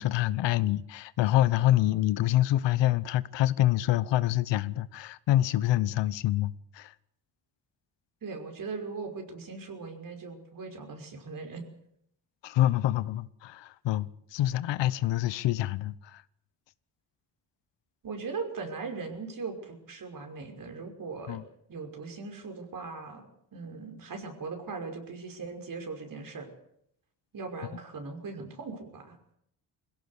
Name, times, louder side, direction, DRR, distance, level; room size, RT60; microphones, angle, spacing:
voice 1, 0.0-6.9 12.4-16.2 21.3-21.4, left 14 dB, 75° left, 1.0 m, -26 dB
voice 2, 8.2-11.6 18.0-21.4 21.7-23.3 23.5-26.5 27.3-29.2, right 4 dB, 50° right, 5.8 m, -39 dB
22.0 x 17.0 x 8.3 m
cardioid pair, 90°, 43 cm